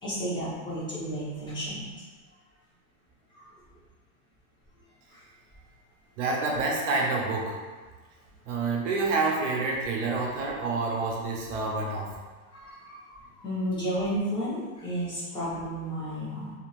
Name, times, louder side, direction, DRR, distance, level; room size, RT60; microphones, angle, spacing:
voice 1, 0.0-1.9 3.3-3.4 5.1-5.2 12.5-16.5, equal, 10° left, -11 dB, 1.1 m, -32 dB
voice 2, 6.2-7.5 8.4-12.1, right 3 dB, 55° right, -1 dB, 0.8 m, -28 dB
2.8 x 2.8 x 2.5 m, 1.4 s
hypercardioid pair, 130°, 44 cm